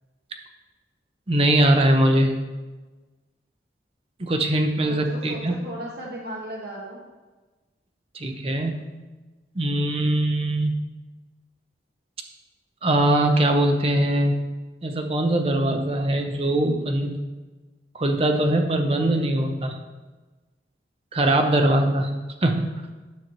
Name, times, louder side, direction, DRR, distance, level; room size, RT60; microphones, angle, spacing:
voice 1, 1.3-2.3 4.2-5.6 8.1-8.9 9.6-10.7 12.8-14.3 14.8-17.2 17.9-19.8 21.1-22.1 22.4-22.8, right 1 dB, 30° right, 4 dB, 0.6 m, -21 dB
voice 2, 4.8-7.0, right 1 dB, 65° right, -3 dB, 0.9 m, -35 dB
9.9 x 6.3 x 3.1 m, 1.2 s
head